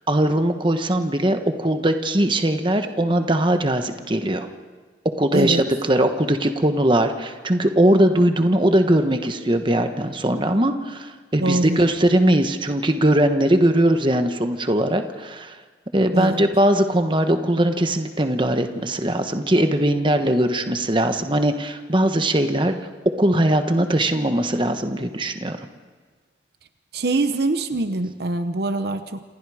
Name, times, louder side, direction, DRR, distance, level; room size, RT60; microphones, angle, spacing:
voice 1, 0.1-4.5 5.2-5.6 5.9-15.6 15.9-22.8 23.2-25.6, right 1 dB, 25° right, 7 dB, 1.2 m, -20 dB
voice 2, 5.3-5.6 11.4-11.8 16.1-16.4 26.9-29.2, right 2 dB, 60° right, 9 dB, 0.9 m, -24 dB
27.5 x 27.0 x 5.0 m, 1.5 s
head